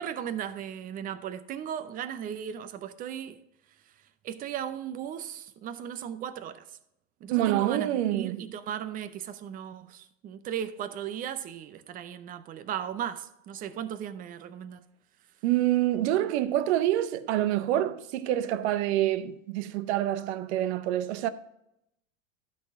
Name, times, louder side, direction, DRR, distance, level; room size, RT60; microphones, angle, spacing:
voice 1, 0.0-3.4 4.2-6.7 7.2-14.8, right 9 dB, 25° right, 0.5 m, -36 dB
voice 2, 7.3-8.4 15.4-21.3, right 13 dB, 60° right, 0.8 m, -26 dB
11.5 x 4.2 x 5.2 m
supercardioid pair, 130°, 38 cm